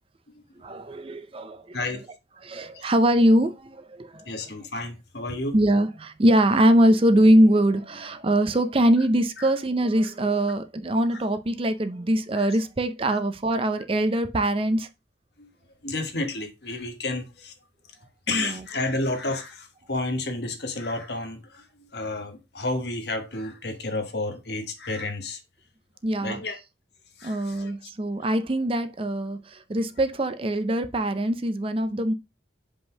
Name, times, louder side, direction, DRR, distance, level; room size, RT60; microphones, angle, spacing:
voice 1, 0.6-1.8 2.4-4.3 5.5-14.9 18.3-18.6 26.0-26.4 27.2-32.1, right 1 dB, 30° right, 0.5 m, -22 dB
voice 2, 1.7-2.1 2.7-2.8 4.3-5.6 9.4-9.5 11.1-11.2 12.3-12.5 13.0-13.2 15.4-15.5 15.8-17.5 18.3-25.4 26.2-26.6 27.2-27.9, left 2 dB, 60° left, 1.3 m, -31 dB
5.2 x 3.7 x 5.8 m
head